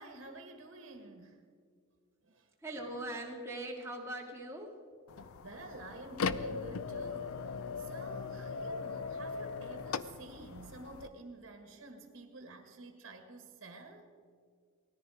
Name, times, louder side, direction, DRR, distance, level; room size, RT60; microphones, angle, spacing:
voice 1, 0.0-1.4 2.2-2.5 5.4-7.4 7.8-14.1, right 2 dB, 60° right, 5 dB, 1.7 m, -49 dB
voice 2, 2.6-4.7, right 1 dB, 15° right, -1 dB, 2.2 m, -41 dB
sound 1, 5.1-11.1, left 5 dB, 85° left, 0.5 m, -39 dB
18.5 x 14.0 x 5.0 m, 2.1 s
head